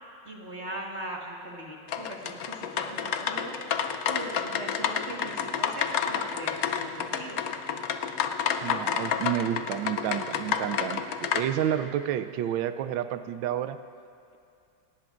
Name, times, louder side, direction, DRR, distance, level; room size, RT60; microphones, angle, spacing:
voice 1, 0.2-7.4, right 1 dB, 35° right, -1 dB, 1.8 m, -40 dB
sound 1, 1.9-11.4, left 8 dB, 65° left, 0.9 m, -30 dB
voice 2, 8.6-13.8, right 11 dB, 80° right, 11 dB, 1.3 m, -30 dB
28.5 x 18.5 x 2.5 m, 2.5 s
omnidirectional pair, 2.1 m